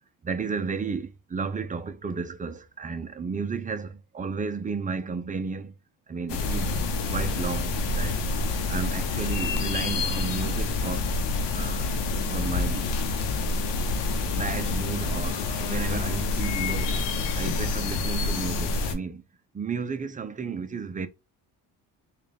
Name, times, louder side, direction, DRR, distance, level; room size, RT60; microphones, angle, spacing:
voice 1, 0.2-5.7 6.1-6.8 7.1-8.2 8.7-11.1 11.5-11.9 12.3-12.9 14.3-17.0 17.4-19.2 19.5-21.1, right 5 dB, 20° right, 0.5 m, -33 dB
sound 1, 6.3-19.0, left 3 dB, 85° left, 0.9 m, -27 dB
3.6 x 2.4 x 3.4 m
cardioid pair, 95°, 41 cm